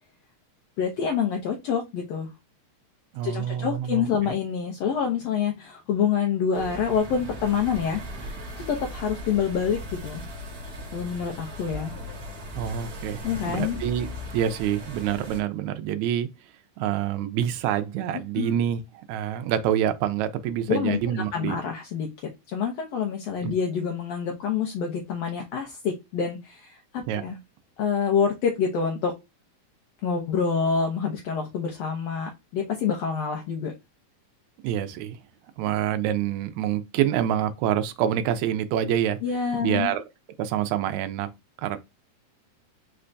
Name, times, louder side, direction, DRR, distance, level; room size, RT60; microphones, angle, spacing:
voice 1, 0.8-2.3 3.2-8.4 8.7-10.2 10.9-11.9 13.2-13.8 18.3-18.5 20.7-22.1 22.5-27.4 27.8-29.1 30.0-33.7 39.2-39.9, left 7 dB, 75° left, 1.5 m, -27 dB
voice 2, 3.1-4.3 12.6-14.1 14.3-16.3 16.8-21.6 23.4-23.5 27.1-27.2 34.6-35.2 35.6-39.2 39.6-40.0 40.4-41.3 41.6-41.8, right 10 dB, 80° right, 1.7 m, -26 dB
sound 1, 6.5-15.4, equal, 60° right, 0.9 m, -38 dB
5.1 x 3.3 x 2.6 m
omnidirectional pair, 3.8 m